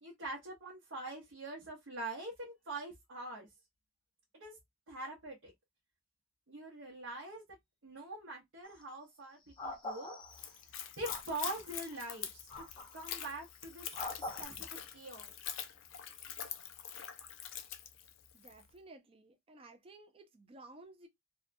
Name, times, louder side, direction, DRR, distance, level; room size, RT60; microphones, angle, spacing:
voice 1, 0.0-3.5 4.3-4.6 4.9-5.5 6.5-7.4 7.8-10.2 11.0-12.7 12.9-14.7 14.9-15.3, right 2 dB, 75° right, 0.8 m, -44 dB
sound 1, 8.6-8.8 9.6-10.6 11.0-11.6 12.5-13.1 13.9-14.4, left 2 dB, 25° left, 0.6 m, -43 dB
Splash splatter / Trickle dribble, 10.3-18.6, left 10 dB, 80° left, 0.4 m, -45 dB
voice 2, 18.3-21.1, right 2 dB, 30° right, 0.4 m, -55 dB
2.7 x 2.2 x 2.5 m
head